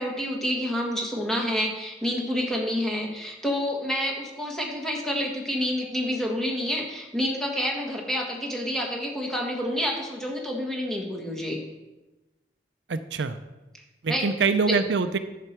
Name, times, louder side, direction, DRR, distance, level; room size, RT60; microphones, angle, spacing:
voice 1, 0.0-11.6 14.1-14.3 14.7-14.8, equal, 5° left, -1 dB, 1.5 m, -28 dB
voice 2, 12.9-13.4 14.0-15.2, right 4 dB, 80° right, 11 dB, 0.5 m, -24 dB
11.0 x 6.7 x 4.5 m, 1.1 s
head